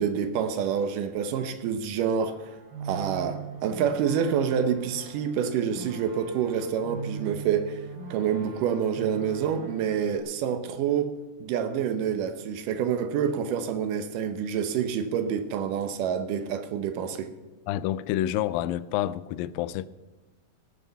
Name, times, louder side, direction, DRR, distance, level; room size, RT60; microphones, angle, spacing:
voice 1, 0.0-2.4 2.8-7.8 8.1-11.1 11.4-17.3, right 8 dB, 70° right, 2.3 m, -27 dB
sound 1, 2.2-10.2, right 5 dB, 40° right, 3.9 m, -41 dB
voice 2, 17.7-19.9, left 13 dB, 80° left, 2.2 m, -28 dB
17.5 x 6.8 x 7.0 m
omnidirectional pair, 4.3 m